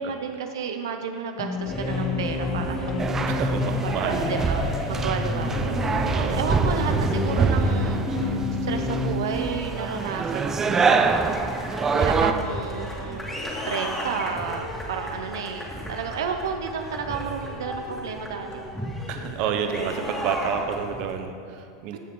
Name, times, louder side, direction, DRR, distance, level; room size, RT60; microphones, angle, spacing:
voice 1, 0.0-3.4 3.8-11.0 11.9-13.3 13.7-18.6 19.4-20.1 21.9-22.0, right 6 dB, 90° right, 5 dB, 0.7 m, -32 dB
sound 1, 1.4-8.8, left 8 dB, 35° left, 0.8 m, -33 dB
sound 2, 1.5-21.1, left 1 dB, 5° left, 2.0 m, -32 dB
sound 3, 3.0-12.3, right 4 dB, 20° right, 0.5 m, -25 dB
voice 2, 3.3-4.4 6.1-6.4 19.1-22.0, right 7 dB, 50° right, 6 dB, 0.9 m, -30 dB
14.5 x 6.6 x 3.8 m, 2.4 s
supercardioid pair, 130°, 2 cm